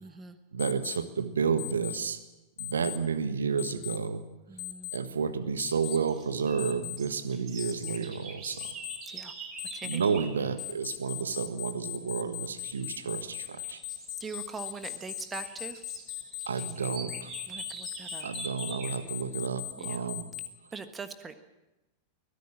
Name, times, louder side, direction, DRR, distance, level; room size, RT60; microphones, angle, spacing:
voice 1, 0.0-0.4 4.5-4.9 9.1-9.3 9.7-10.0 14.2-15.8 17.5-18.3 19.8-20.0 20.7-21.3, right 4 dB, 15° right, 10 dB, 1.5 m, -42 dB
voice 2, 0.5-2.2 2.6-4.2 4.9-8.7 9.8-13.8 16.5-17.3 18.2-20.3, right 6 dB, 70° right, 12 dB, 1.5 m, -31 dB
Alarm, 0.6-1.0 1.6-2.0 2.6-3.0 3.6-4.0 4.6-5.0 5.6-6.0 6.6-7.0 7.6-8.0 8.6-9.0 9.6-10.0 10.6-20.5, left 18 dB, 45° left, 2.1 m, -38 dB
sound 1, 5.7-10.4 12.6-13.0 13.4-19.0, right 4 dB, 30° right, 5.0 m, -45 dB
23.5 x 17.5 x 7.3 m, 1.0 s
figure-of-eight pair, 90°, 0 cm